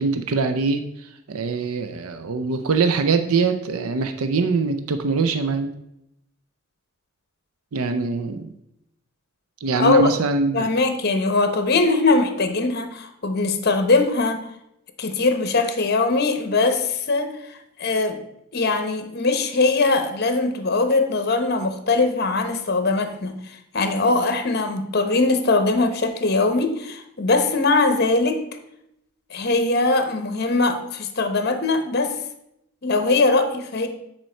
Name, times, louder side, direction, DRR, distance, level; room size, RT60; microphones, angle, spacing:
voice 1, 0.0-5.7 7.7-8.5 9.6-10.7, right 4 dB, 85° right, 8 dB, 0.5 m, -23 dB
voice 2, 9.8-10.1 10.5-14.4 15.0-17.3 17.8-18.2 18.5-23.3 23.7-28.4 29.3-32.1 32.8-33.9, left 3 dB, 45° left, 7 dB, 0.8 m, -21 dB
9.0 x 4.4 x 4.4 m, 0.81 s
head